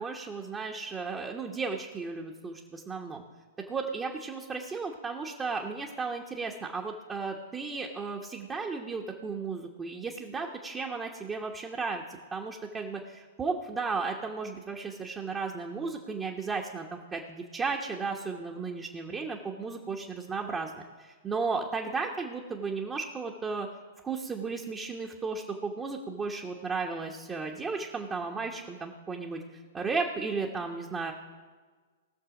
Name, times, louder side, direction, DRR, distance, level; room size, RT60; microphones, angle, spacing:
voice 1, 0.0-3.2 3.7-23.7 24.0-29.4 29.7-31.1, right 4 dB, 20° right, 0 dB, 1.1 m, -34 dB
19.5 x 6.7 x 5.0 m, 1.5 s
figure-of-eight pair, 105°, 0 cm